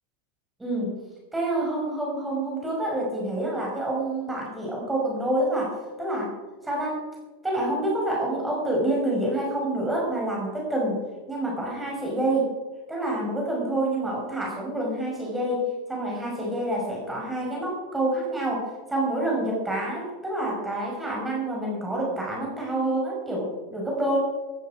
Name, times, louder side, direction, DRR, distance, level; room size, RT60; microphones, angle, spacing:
voice 1, 0.6-0.9 1.3-5.7 6.0-6.3 6.6-7.0 7.4-11.0 11.3-12.5 12.9-24.2, right 1 dB, 10° right, -3 dB, 5.5 m, -27 dB
14.5 x 14.5 x 5.0 m, 1.2 s
figure-of-eight pair, 90°, 0 cm